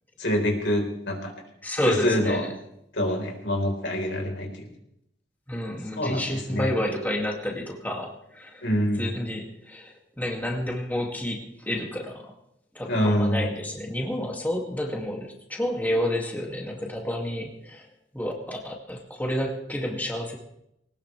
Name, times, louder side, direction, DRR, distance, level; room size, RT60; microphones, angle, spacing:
voice 1, 0.2-1.3 1.9-2.4 2.9-4.7 6.0-6.7 8.6-9.1 12.9-13.4, equal, 80° left, 2 dB, 4.2 m, -26 dB
voice 2, 1.6-2.5 5.5-8.6 9.0-12.3 12.7-17.9 18.1-20.4, left 1 dB, 10° left, 0 dB, 2.3 m, -30 dB
20.5 x 19.0 x 3.4 m, 0.78 s
head